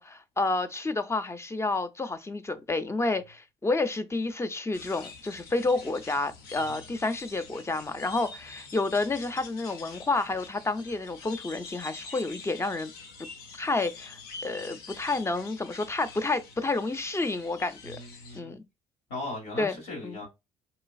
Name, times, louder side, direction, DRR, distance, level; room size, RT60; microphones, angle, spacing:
voice 1, 0.0-12.9 13.6-18.0 18.3-18.6 19.6-19.8 20.0-20.2, left 3 dB, 15° left, 0.5 m, -30 dB
sound 1, 4.7-18.4, left 4 dB, 75° left, 0.7 m, -46 dB
voice 2, 17.8-18.5 19.1-20.3, left 2 dB, 90° left, 1.5 m, -38 dB
4.0 x 2.3 x 2.3 m
supercardioid pair, 70°, 16 cm